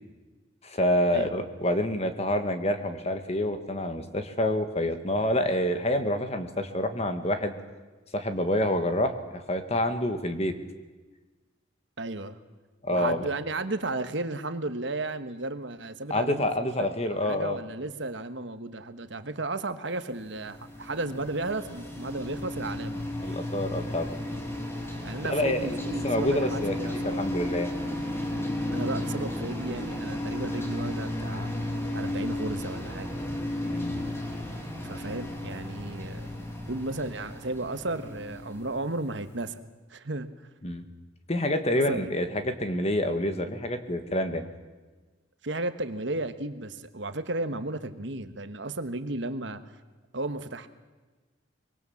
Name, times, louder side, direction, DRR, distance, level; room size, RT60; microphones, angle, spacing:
voice 1, 0.6-7.5 8.1-9.2 9.5-10.5 12.8-13.3 16.1-17.6 23.2-24.1 25.2-25.8 26.0-26.7 27.0-27.7 33.6-34.1 40.6-40.9 41.3-44.5, left 1 dB, 30° left, 8 dB, 1.7 m, -27 dB
voice 2, 12.0-12.4 12.9-23.0 25.0-27.2 28.7-31.5 31.9-33.1 34.8-36.3 36.7-39.6 39.9-40.3 41.9-42.1 45.4-49.6 50.1-50.7, right 2 dB, 60° right, 10 dB, 1.3 m, -34 dB
sound 1, 20.2-39.2, left 1 dB, 10° left, 2.7 m, -34 dB
24.5 x 22.5 x 7.2 m, 1.3 s
head